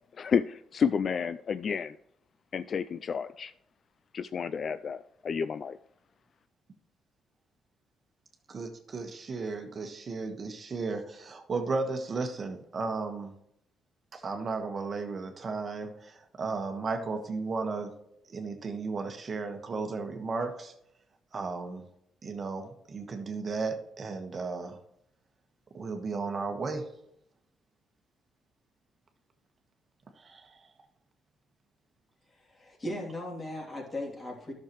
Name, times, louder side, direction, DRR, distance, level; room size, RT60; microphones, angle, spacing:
voice 1, 0.2-2.0 2.5-3.5 4.1-5.8, left 6 dB, 50° left, 0.3 m, -30 dB
voice 2, 8.5-13.3 14.1-17.9 18.3-20.7 21.3-21.8 22.2-24.8 25.7-26.8 30.2-30.4, right 4 dB, 40° right, 1.3 m, -34 dB
voice 3, 32.3-34.5, left 1 dB, 30° left, 2.8 m, -38 dB
11.5 x 6.5 x 3.1 m
cardioid pair, 90°, 0 cm